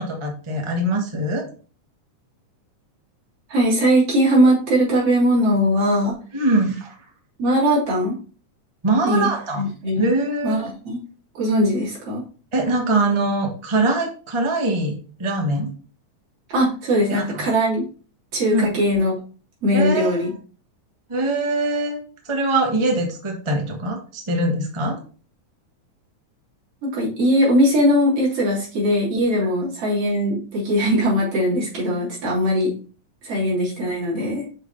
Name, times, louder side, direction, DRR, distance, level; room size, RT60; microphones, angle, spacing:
voice 1, 0.0-1.4 6.3-6.9 8.8-9.6 10.0-10.7 12.5-15.7 17.1-17.4 18.5-18.7 19.7-20.3 21.1-25.0, right 2 dB, 30° right, 1 dB, 0.5 m, -23 dB
voice 2, 3.5-6.2 7.4-8.1 9.0-9.3 9.6-10.1 10.4-11.0 11.4-12.2 16.5-17.8 18.3-19.1 19.6-20.3 26.8-32.7 33.2-34.4, equal, 50° right, -6 dB, 4.0 m, -20 dB
6.3 x 5.9 x 3.3 m, 0.39 s
omnidirectional pair, 3.5 m